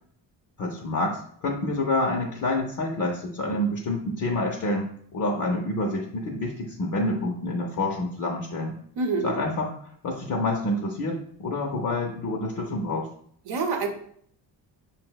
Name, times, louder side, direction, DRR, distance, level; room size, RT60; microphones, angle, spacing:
voice 1, 0.6-8.7 9.2-9.7 10.0-13.1, left 2 dB, 45° left, -1 dB, 0.5 m, -28 dB
voice 2, 9.0-9.4 13.5-13.9, right 4 dB, 65° right, 5 dB, 0.7 m, -26 dB
5.0 x 2.0 x 2.2 m, 0.63 s
cardioid pair, 95°, 43 cm